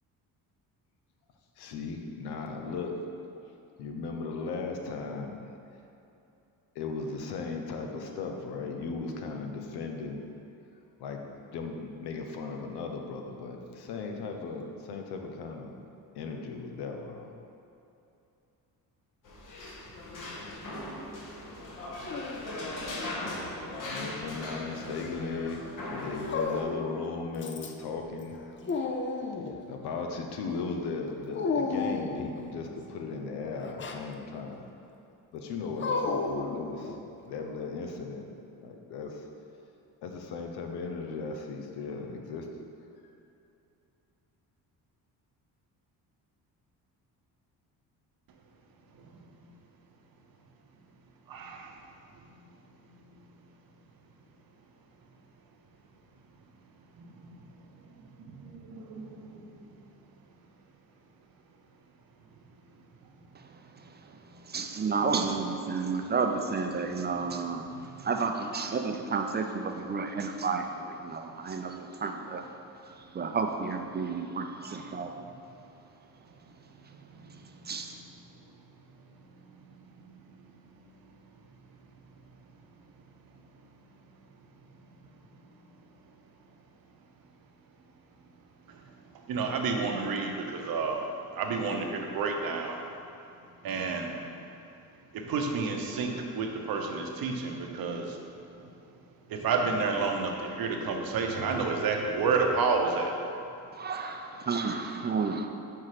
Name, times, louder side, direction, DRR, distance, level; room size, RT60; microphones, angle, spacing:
voice 1, 1.6-3.0 3.8-5.4 6.7-10.2 11.0-11.2 11.5-15.8 16.1-17.3 23.8-28.4 28.7-28.9 29.7-34.6 35.3-37.0 37.2-38.3 38.6-39.3 40.0-42.5, left 4 dB, 85° left, 3 dB, 0.8 m, -37 dB
sound 1, 19.2-26.6, left 1 dB, 55° left, 1.4 m, -39 dB
Dog, 22.0-22.9 24.0-24.8 26.3-27.0 27.4-27.9 28.3-29.6 31.3-32.4 33.6-34.1 35.8-37.1, left 4 dB, 30° left, 0.5 m, -33 dB
voice 2, 49.0-49.3 51.3-51.8 56.9-57.5 57.8-58.0 58.9-59.8 67.7-68.1 76.8-77.5 88.7-92.8 93.6-94.3 95.1-98.2 98.6-98.7 99.3-103.2, right 4 dB, 65° right, 2 dB, 0.9 m, -31 dB
voice 3, 64.4-67.7 68.0-72.4 73.0-75.1 77.7-78.0 103.7-105.5, right 4 dB, 25° right, 5 dB, 0.5 m, -31 dB
5.9 x 4.5 x 4.9 m, 2.7 s
cardioid pair, 95°, 39 cm